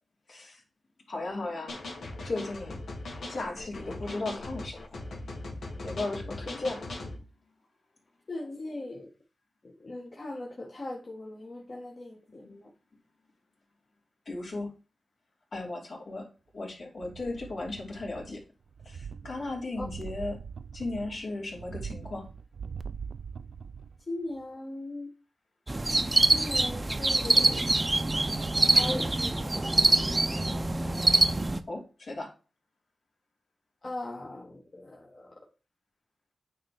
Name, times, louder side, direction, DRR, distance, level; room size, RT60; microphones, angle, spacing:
voice 1, 0.3-0.6 1.1-1.7 2.2-2.8 3.3-4.8 5.8-6.9 14.3-14.7 15.5-16.3 16.5-18.4 18.8-20.4 20.7-22.3 31.7-32.3, left 2 dB, 70° left, 2.8 m, -35 dB
sound 1, 1.7-7.2, left 2 dB, 90° left, 1.8 m, -40 dB
voice 2, 8.3-9.1 9.6-12.7 19.8-19.9 24.1-25.1 26.2-27.6 28.6-29.6 33.8-35.3, left 2 dB, 50° left, 1.7 m, -39 dB
sound 2, 17.0-18.4 18.7-24.0 24.4-24.5, right 6 dB, 85° right, 0.4 m, -42 dB
sound 3, 25.7-31.6, right 2 dB, 25° right, 0.6 m, -24 dB
9.1 x 3.4 x 4.4 m
wide cardioid pair, 85°, 0 cm